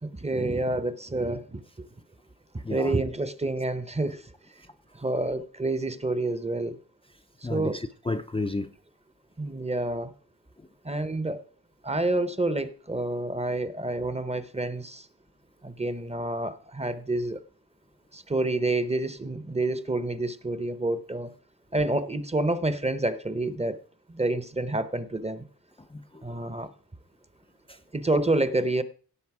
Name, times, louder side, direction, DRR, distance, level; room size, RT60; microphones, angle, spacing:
voice 1, 0.0-1.9 2.7-4.2 4.9-6.8 7.5-7.8 9.4-10.1 10.8-11.4 11.8-15.1 15.6-17.4 18.1-21.3 21.7-23.8 24.1-25.5 26.2-26.7 27.9-28.8, right 2 dB, 15° right, 0.8 m, -28 dB
voice 2, 7.4-8.7 25.9-26.2 27.7-27.8, left 3 dB, 15° left, 0.5 m, -32 dB
16.5 x 6.3 x 4.8 m
wide cardioid pair, 120°, 38 cm